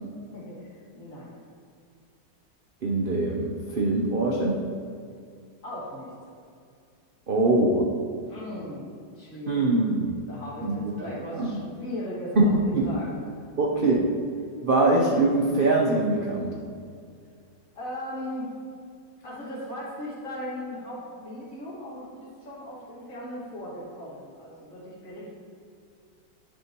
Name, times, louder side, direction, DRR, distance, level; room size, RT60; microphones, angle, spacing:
voice 1, 0.3-1.4 5.6-6.1 8.3-8.9 9.2-9.7 10.3-12.5 12.8-13.2 17.7-18.5 19.2-25.4, left 1 dB, 45° left, -7 dB, 2.5 m, -38 dB
voice 2, 2.8-4.6 7.3-7.9 9.5-10.1 10.6-11.1 11.3-11.5 12.4-12.9 13.6-14.0 14.6-16.5, right 2 dB, 70° right, -2 dB, 0.5 m, -23 dB
10.0 x 6.5 x 3.0 m, 2.3 s
omnidirectional pair, 2.0 m